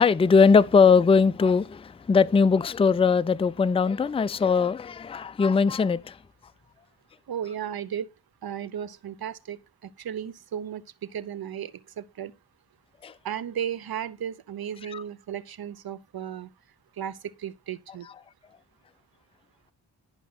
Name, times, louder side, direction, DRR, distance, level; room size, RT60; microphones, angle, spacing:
voice 1, 0.0-6.2 13.0-13.1 14.9-15.0, left 5 dB, 15° left, 0.4 m, -20 dB
voice 2, 7.3-8.1 8.4-11.7 12.0-12.3 13.2-16.5 17.0-18.1, right 9 dB, 60° right, 0.9 m, -35 dB
11.5 x 5.3 x 4.0 m
cardioid pair, 70°, 41 cm